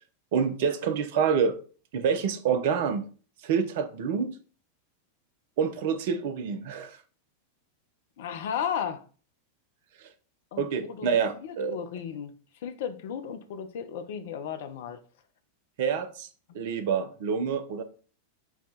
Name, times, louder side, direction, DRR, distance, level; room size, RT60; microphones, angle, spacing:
voice 1, 0.3-1.6 1.9-3.1 3.4-4.4 5.6-7.0 10.6-11.8 15.8-16.3 16.5-17.8, right 6 dB, 50° right, 0.6 m, -27 dB
voice 2, 8.2-9.0 10.5-11.1 11.4-12.3 12.6-15.0 16.5-16.6, left 8 dB, 55° left, 0.5 m, -34 dB
4.6 x 2.3 x 4.1 m
figure-of-eight pair, 90°, 0 cm